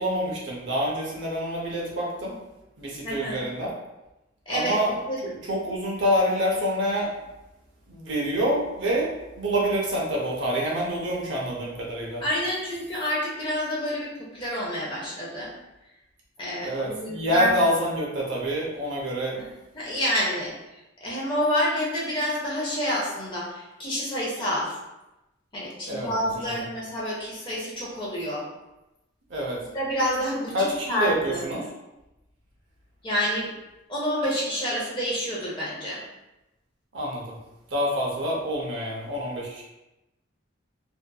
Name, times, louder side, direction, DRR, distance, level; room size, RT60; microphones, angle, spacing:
voice 1, 0.0-2.3 2.8-3.7 4.5-4.9 5.5-7.1 7.9-9.1 9.4-12.2 16.6-19.4 25.9-26.1 29.3-29.6 30.5-31.6 36.9-37.4 37.7-39.6, equal, 65° right, -4 dB, 0.6 m, -26 dB
voice 2, 3.0-3.5 4.5-4.8 5.1-5.2 12.2-15.5 16.4-17.6 19.4-19.5 19.7-20.5 21.0-24.7 25.5-28.4 29.6-31.5 33.0-33.5 33.9-36.0, equal, 25° left, -6 dB, 0.6 m, -28 dB
2.6 x 2.4 x 2.3 m, 0.97 s
head